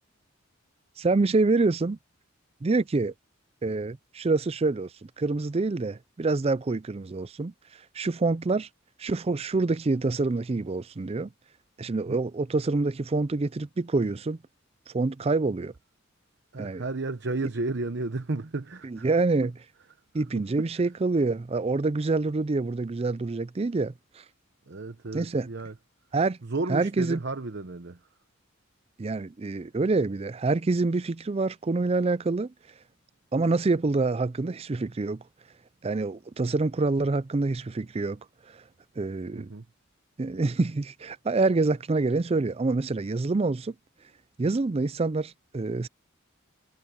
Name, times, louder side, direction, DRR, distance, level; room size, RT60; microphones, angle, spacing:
voice 1, 1.0-2.0 2.6-3.1 3.6-4.9 5.2-7.5 8.0-8.7 9.0-11.3 11.8-14.4 14.9-15.7 16.6-16.8 18.8-19.5 20.1-23.9 25.1-25.5 26.1-26.4 26.7-27.2 29.0-32.5 33.3-35.2 35.8-38.2 39.0-39.5 40.2-43.7 44.4-45.9, right 3 dB, 30° right, 0.4 m, -26 dB
voice 2, 16.5-19.1 20.6-20.7 24.7-25.7 26.4-28.0 39.3-39.6, right 2 dB, 55° right, 0.8 m, -33 dB
head